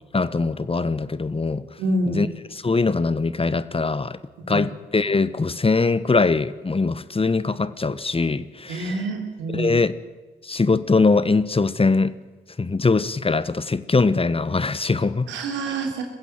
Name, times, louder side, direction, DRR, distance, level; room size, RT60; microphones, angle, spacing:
voice 1, 0.1-1.8 2.1-4.2 4.5-9.0 9.5-9.9 10.4-12.2 12.6-15.3, left 3 dB, 30° left, 1.1 m, -22 dB
voice 2, 1.8-2.2 4.4-4.6 8.7-9.7 15.3-16.0, right 2 dB, 85° right, 3.2 m, -27 dB
21.0 x 15.5 x 9.2 m
hypercardioid pair, 40°, 19 cm